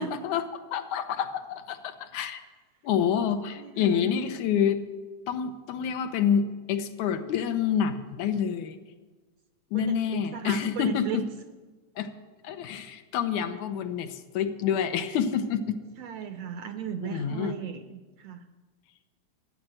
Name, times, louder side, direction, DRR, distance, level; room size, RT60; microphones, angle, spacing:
voice 1, 0.0-2.4 2.8-4.8 5.3-8.8 9.7-11.2 12.0-12.1 12.4-15.8 17.0-17.6, left 8 dB, 75° left, 8 dB, 2.2 m, -28 dB
voice 2, 3.6-4.1 9.7-11.2 16.0-18.5, right 8 dB, 80° right, 9 dB, 1.5 m, -37 dB
13.5 x 9.6 x 7.7 m, 1.3 s
omnidirectional pair, 3.4 m